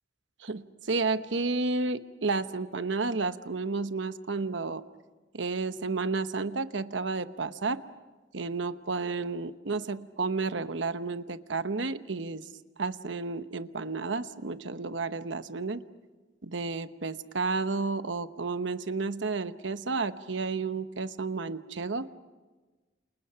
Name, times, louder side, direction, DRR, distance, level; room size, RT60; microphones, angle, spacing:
voice 1, 0.4-4.8 5.3-7.8 8.3-12.4 12.8-15.8 16.4-22.1, right 3 dB, 80° right, 11 dB, 1.0 m, -31 dB
29.0 x 28.0 x 5.7 m, 1.3 s
head